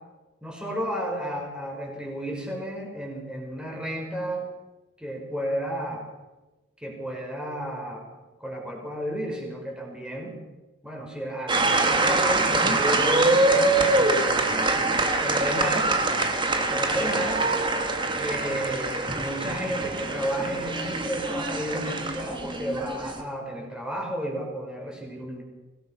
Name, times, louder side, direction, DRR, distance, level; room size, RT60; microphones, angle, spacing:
voice 1, 0.4-4.5 5.0-6.0 6.8-8.1 8.4-10.3 10.8-15.9 16.7-17.4 18.2-25.4, equal, 5° right, 0 dB, 5.7 m, -32 dB
sound 1, 11.5-23.2, right 2 dB, 25° right, 2.2 m, -24 dB
25.0 x 18.5 x 5.9 m, 1.1 s
head